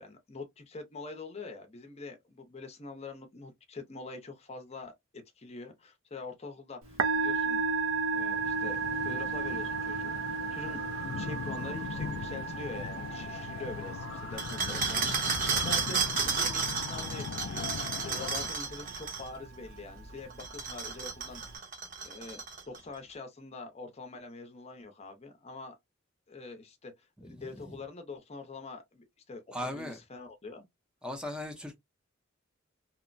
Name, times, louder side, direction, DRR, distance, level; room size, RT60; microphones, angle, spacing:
voice 1, 0.0-7.6 8.1-10.9 11.1-17.7 18.0-21.6 22.0-25.7 26.3-26.9 27.2-30.7, left 3 dB, 30° left, 0.7 m, -44 dB
Musical instrument, 6.8-21.6, right 4 dB, 85° right, 0.5 m, -35 dB
sound 1, 8.2-18.5, left 6 dB, 75° left, 0.4 m, -40 dB
Bottles Rattling, 14.4-19.3 20.3-22.8, right 5 dB, 40° right, 0.8 m, -32 dB
voice 2, 27.2-27.8 29.5-30.0 31.0-31.8, left 1 dB, 5° right, 0.6 m, -38 dB
2.9 x 2.1 x 2.5 m
head